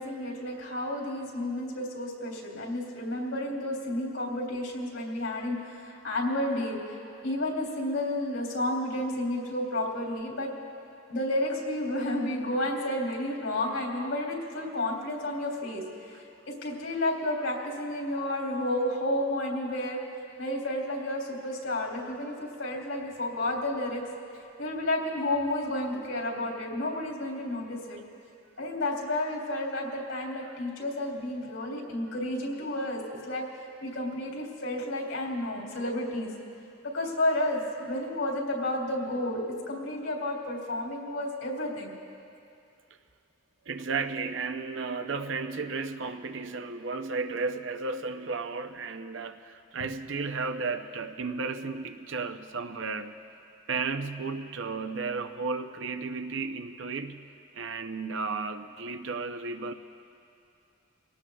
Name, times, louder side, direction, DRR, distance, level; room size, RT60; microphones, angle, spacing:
voice 1, 0.0-6.8 7.2-10.5 11.1-16.2 16.5-20.0 20.4-24.0 24.6-28.0 28.6-33.4 33.8-36.3 36.8-39.4 39.7-41.9, left 1 dB, 80° left, -1 dB, 3.2 m, -31 dB
voice 2, 43.7-53.1 53.7-59.7, right 4 dB, 65° right, 8 dB, 0.6 m, -34 dB
25.0 x 18.5 x 2.3 m, 2.6 s
head